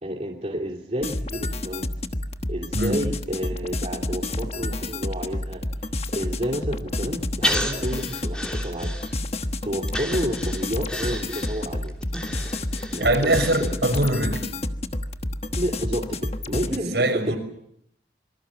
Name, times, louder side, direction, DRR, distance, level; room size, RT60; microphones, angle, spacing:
voice 1, 0.0-1.9 2.5-5.6 6.1-8.9 9.6-11.9 12.9-13.8 15.6-17.3, equal, 40° right, 0 dB, 2.9 m, -30 dB
sound 1, 1.0-16.8, left 1 dB, 35° left, 1.2 m, -29 dB
Breathing, 7.4-9.4 9.9-14.1 14.4-14.5, equal, 5° left, 3.1 m, -32 dB
voice 2, 13.0-14.5 16.9-17.4, right 1 dB, 75° right, 4 dB, 6.4 m, -22 dB
26.5 x 24.5 x 7.2 m, 0.73 s
head